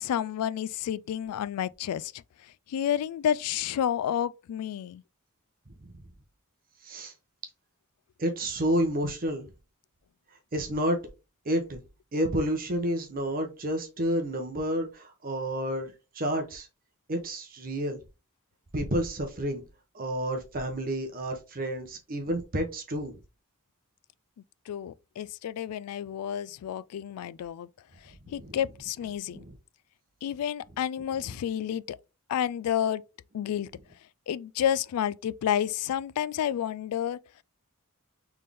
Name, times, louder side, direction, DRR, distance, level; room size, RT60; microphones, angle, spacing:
voice 1, 0.0-2.1 2.7-5.0 24.7-27.7 28.3-29.4 30.2-32.0 32.3-33.0 33.3-33.7 34.3-37.2, left 9 dB, 85° left, 0.3 m, -30 dB
voice 2, 8.2-9.5 10.5-11.0 11.4-11.8 12.1-16.7 17.1-18.0 18.7-19.6 19.9-23.1 28.4-28.6 29.3-29.5, equal, 40° right, 0.8 m, -30 dB
4.1 x 3.5 x 3.4 m
head